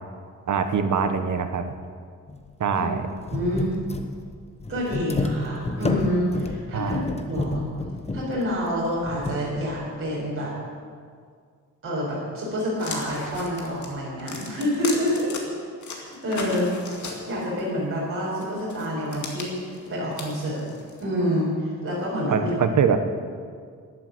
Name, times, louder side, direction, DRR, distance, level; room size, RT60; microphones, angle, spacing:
voice 1, 0.5-1.6 2.6-3.0 6.7-7.0 22.3-23.1, right 6 dB, 65° right, 8 dB, 1.1 m, -23 dB
sound 1, 2.3-2.5 2.7-2.8 3.2-9.9, left 3 dB, 20° left, 1.0 m, -30 dB
voice 2, 3.3-3.7 4.7-7.0 7.3-7.6 8.1-10.5 11.8-15.3 15.9-16.7 17.3-20.7 21.0-22.8, equal, 40° right, -6 dB, 4.5 m, -27 dB
sound 2, 12.8-15.4 15.8-17.6 18.4-21.0, left 3 dB, 65° left, 2.3 m, -36 dB
11.5 x 11.0 x 7.8 m, 2.1 s
wide cardioid pair, 155°, 32 cm